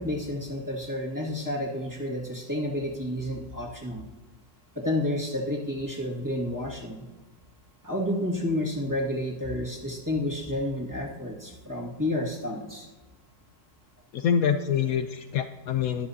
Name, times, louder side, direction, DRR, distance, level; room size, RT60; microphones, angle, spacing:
voice 1, 0.0-4.1 4.8-7.0 7.8-12.9, left 1 dB, 10° right, -2 dB, 1.9 m, -30 dB
voice 2, 14.1-16.1, left 8 dB, 70° left, 8 dB, 1.0 m, -26 dB
20.5 x 7.5 x 2.8 m, 1.3 s
omnidirectional pair, 1.7 m